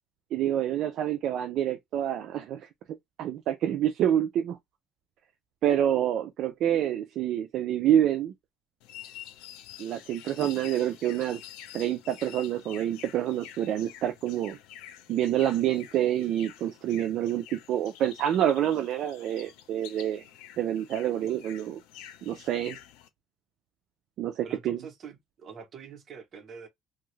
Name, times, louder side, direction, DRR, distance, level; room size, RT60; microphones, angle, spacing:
voice 1, 0.3-2.7 3.2-4.6 5.6-8.3 9.8-11.4 11.7-14.6 15.1-20.2 20.6-21.8 22.3-22.8 24.2-24.8, right 11 dB, 60° right, 0.4 m, -27 dB
sound 1, 8.8-23.1, left 11 dB, 90° left, 0.5 m, -48 dB
voice 2, 24.4-26.7, right 6 dB, 40° right, 0.9 m, -45 dB
2.7 x 2.4 x 3.1 m
cardioid pair, 135°, 0 cm